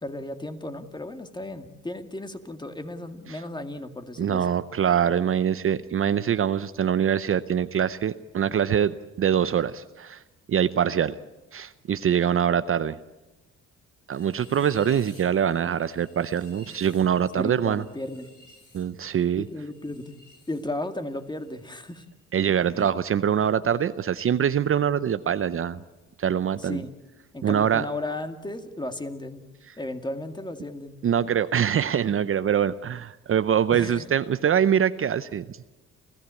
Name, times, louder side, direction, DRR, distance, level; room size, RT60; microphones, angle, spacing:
voice 1, 0.0-4.6 17.3-18.3 19.4-20.2 20.5-22.0 22.7-22.9 26.6-26.9 27.3-29.4 29.8-31.0 33.7-34.1, left 1 dB, 15° left, 7 dB, 2.1 m, -35 dB
voice 2, 4.2-10.2 10.5-11.2 11.5-13.0 14.1-17.8 18.7-19.4 22.3-25.8 26.2-26.8 27.4-27.9 31.0-35.6, right 8 dB, 45° right, 13 dB, 0.7 m, -24 dB
sound 1, 14.1-20.6 20.9-22.0, left 2 dB, 85° left, 7.1 m, -54 dB
30.0 x 15.0 x 8.4 m, 1.1 s
cardioid pair, 90°, 30 cm